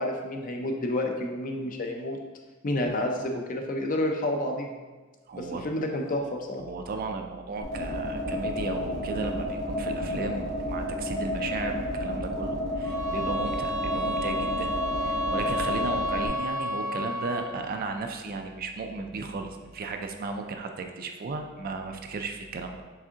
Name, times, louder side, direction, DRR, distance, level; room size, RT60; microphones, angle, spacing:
voice 1, 0.0-2.2 2.6-4.8 5.3-6.6, left 1 dB, 40° left, 2 dB, 0.5 m, -29 dB
voice 2, 5.3-5.6 6.6-14.7 15.0-22.8, right 3 dB, 45° right, 5 dB, 0.4 m, -35 dB
sound 1, 7.6-16.3, left 1 dB, 65° left, 1.5 m, -31 dB
sound 2, 12.8-17.6, left 1 dB, 80° right, 0.7 m, -31 dB
4.8 x 3.5 x 2.8 m, 1.3 s
head